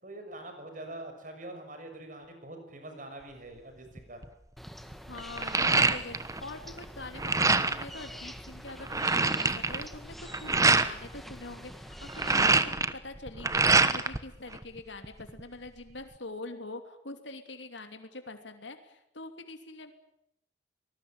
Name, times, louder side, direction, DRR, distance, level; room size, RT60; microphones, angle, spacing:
voice 1, 0.0-4.2, right 1 dB, 45° right, 6 dB, 6.1 m, -44 dB
sound 1, 4.0-4.2 4.7-6.4 6.7-7.9 8.4-8.5 8.7-10.9 11.9-14.2 14.5-15.4, right 3 dB, 15° right, 1.1 m, -25 dB
sound 2, 4.6-12.6, equal, ahead, 1.5 m, -46 dB
voice 2, 5.1-19.9, left 2 dB, 80° left, 7 dB, 3.0 m, -44 dB
24.0 x 20.0 x 9.0 m, 0.79 s
head